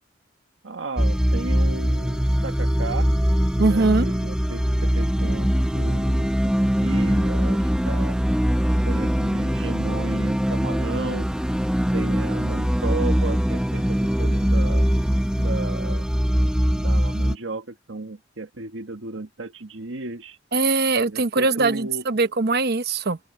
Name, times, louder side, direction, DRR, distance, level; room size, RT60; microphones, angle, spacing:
voice 1, 0.6-3.1 3.7-6.5 6.8-8.2 8.8-11.3 11.9-15.1 15.4-16.0 16.7-20.4 21.0-22.0, right 3 dB, 90° right, 1.5 m, -34 dB
sound 1, 1.0-17.3, equal, 5° right, 0.9 m, -22 dB
voice 2, 3.6-4.1 20.5-23.2, right 3 dB, 60° right, 0.9 m, -21 dB
open air
head